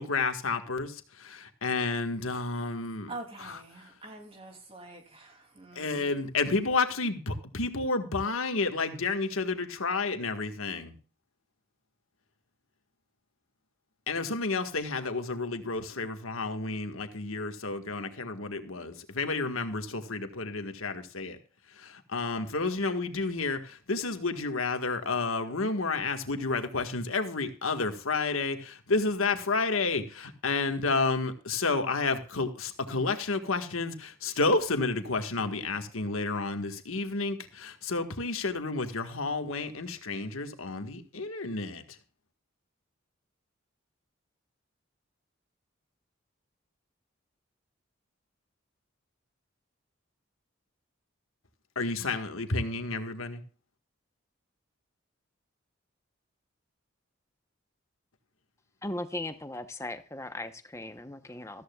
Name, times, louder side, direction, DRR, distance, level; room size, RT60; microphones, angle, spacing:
voice 1, 0.0-3.1 3.4-3.6 5.7-10.9 14.1-21.4 21.8-41.8 51.7-53.4, left 3 dB, 90° left, 7 dB, 1.6 m, -31 dB
voice 2, 3.1-6.1, right 2 dB, 25° right, 3 dB, 2.7 m, -45 dB
voice 3, 58.8-61.6, left 1 dB, 15° left, 9 dB, 0.9 m, -38 dB
14.0 x 14.0 x 2.4 m, 0.39 s
head